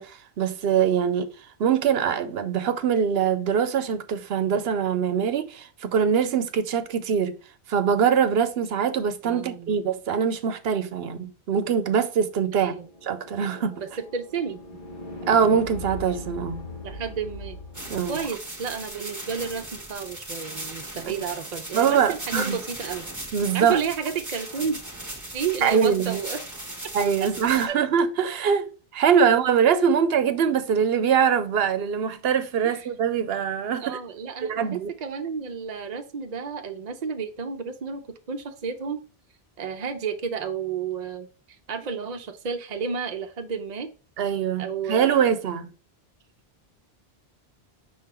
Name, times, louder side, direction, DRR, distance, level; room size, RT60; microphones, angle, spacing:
voice 1, 0.0-1.3 1.6-7.4 7.7-12.7 13.0-13.8 15.3-16.6 17.9-18.2 21.0-21.1 21.7-22.6 23.3-23.8 25.6-26.2 26.9-28.7 28.9-34.0 34.4-34.9 44.2-45.7, right 7 dB, 75° right, 0.9 m, -23 dB
voice 2, 9.2-9.8 12.5-12.9 13.8-14.6 16.8-17.6 18.1-23.1 23.5-24.8 25.3-26.4 27.2-27.3 27.7-27.8 29.2-29.3 32.6-32.9 33.8-39.0 39.6-41.3 41.7-43.9 44.6-45.3, right 6 dB, 45° right, 0.7 m, -31 dB
sound 1, 12.8-18.2, left 1 dB, 55° left, 1.5 m, -39 dB
sound 2, 17.7-27.7, right 1 dB, 20° right, 1.1 m, -38 dB
6.0 x 3.8 x 4.3 m
omnidirectional pair, 1.1 m